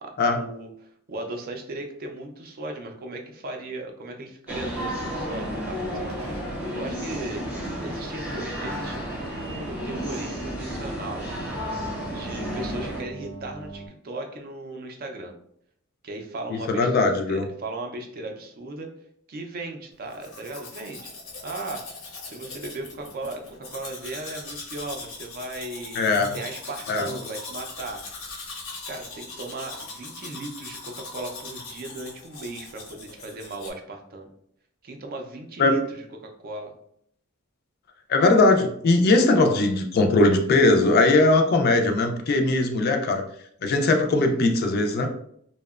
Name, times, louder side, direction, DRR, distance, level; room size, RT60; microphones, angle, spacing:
voice 1, 0.0-0.7 1.1-6.4 6.8-7.5 7.8-11.3 11.9-15.3 16.0-18.9 19.3-21.1 21.4-21.9 22.3-26.0 26.3-28.0 28.9-34.3 34.8-36.7, right 2 dB, 45° right, 4 dB, 0.4 m, -37 dB
sound 1, 4.5-13.0, equal, 5° right, 0.7 m, -32 dB
sound 2, 5.5-13.9, right 3 dB, 90° right, 0.7 m, -42 dB
voice 2, 16.7-17.4 26.0-26.3 26.9-27.1 35.6-35.7 38.1-43.2 43.6-45.1, left 2 dB, 50° left, 5 dB, 0.3 m, -20 dB
Domestic sounds home sounds, 20.1-33.7, left 3 dB, 85° left, 0.7 m, -40 dB
2.7 x 2.1 x 2.3 m, 0.67 s
head